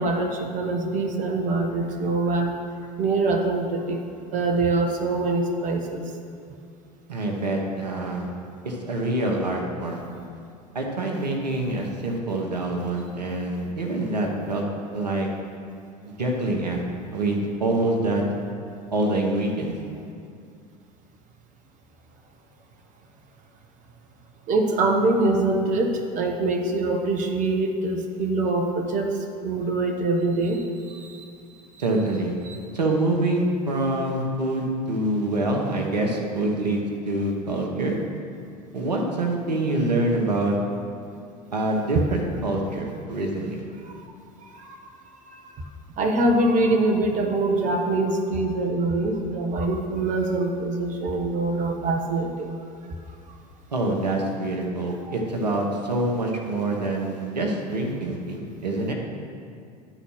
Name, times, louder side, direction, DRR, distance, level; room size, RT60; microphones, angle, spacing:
voice 1, 0.0-2.5 3.0-4.0 4.3-6.0 24.5-29.2 29.4-31.3 32.5-32.6 44.5-44.8 45.3-45.5 46.0-52.5 55.0-55.1, right 2 dB, 40° right, 3 dB, 1.0 m, -24 dB
voice 2, 7.1-8.3 8.6-10.0 10.7-14.6 14.9-15.3 16.1-16.8 17.1-18.2 18.9-19.7 31.8-32.3 32.7-38.0 38.7-40.6 41.5-43.6 53.7-58.9, right 2 dB, 80° right, 0 dB, 1.1 m, -25 dB
11.5 x 4.1 x 6.2 m, 2.4 s
figure-of-eight pair, 75°, 21 cm